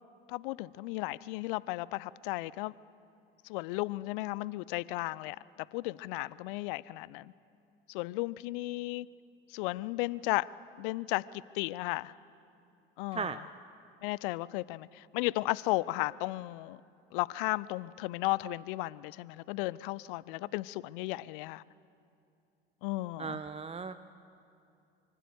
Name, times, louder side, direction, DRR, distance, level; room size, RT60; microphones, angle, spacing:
voice 1, 0.3-2.7 3.4-5.4 5.7-7.3 7.9-9.1 9.5-10.5 10.8-12.1 13.0-13.4 14.0-16.8 17.1-21.6 22.8-23.4, left 20 dB, 60° left, 21 dB, 0.6 m, -34 dB
voice 2, 23.2-23.9, right 5 dB, 20° right, 10 dB, 0.8 m, -36 dB
24.5 x 24.5 x 8.1 m, 2.7 s
figure-of-eight pair, 65°, 29 cm